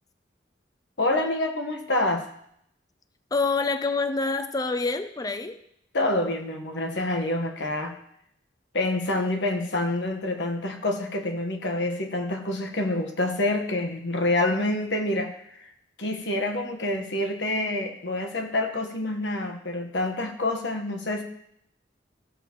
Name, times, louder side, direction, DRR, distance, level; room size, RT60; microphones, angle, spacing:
voice 1, 1.0-2.3 5.9-7.9 8.7-15.7 16.0-21.2, left 2 dB, 80° left, 4 dB, 1.3 m, -27 dB
voice 2, 3.3-5.6, left 3 dB, 20° left, 10 dB, 0.5 m, -26 dB
15.0 x 7.4 x 3.0 m, 0.73 s
head